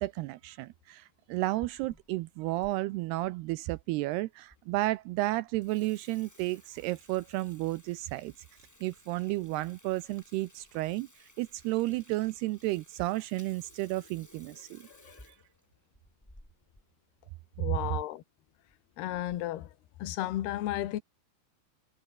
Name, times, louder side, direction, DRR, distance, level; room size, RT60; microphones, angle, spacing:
voice 1, 0.0-8.3 8.8-11.1 11.4-14.9, right 19 dB, 85° right, 2.3 m, -32 dB
Water tap faucet / Sink (filling or washing), 1.5-2.7 3.2-3.3 4.0-4.1 4.5-4.6 5.0-5.2 5.5-16.9 17.2-17.3 17.5-17.7 18.5-18.7 19.1-19.6, equal, 5° left, 4.7 m, -58 dB
voice 2, 14.9-15.2 17.6-18.2 19.0-19.7 20.0-21.0, left 14 dB, 65° left, 3.4 m, -34 dB
omnidirectional pair, 5.3 m